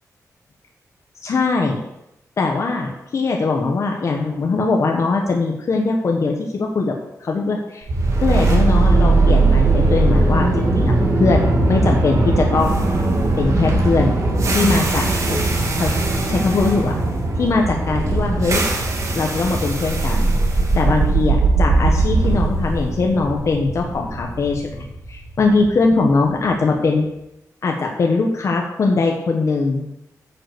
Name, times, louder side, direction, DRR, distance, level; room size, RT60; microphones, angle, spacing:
voice 1, 1.2-1.8 2.4-6.9 7.2-7.9 8.2-10.9 11.2-12.8 13.4-14.1 14.5-15.4 15.8-15.9 16.3-17.0 17.4-18.6 19.1-20.3 20.7-27.1 27.6-29.8, left 3 dB, 50° left, 1 dB, 1.2 m, -20 dB
sound 1, 7.9-26.0, right 2 dB, 55° right, 2.2 m, -19 dB
9.2 x 6.7 x 6.7 m, 0.89 s
wide cardioid pair, 175°, 6 cm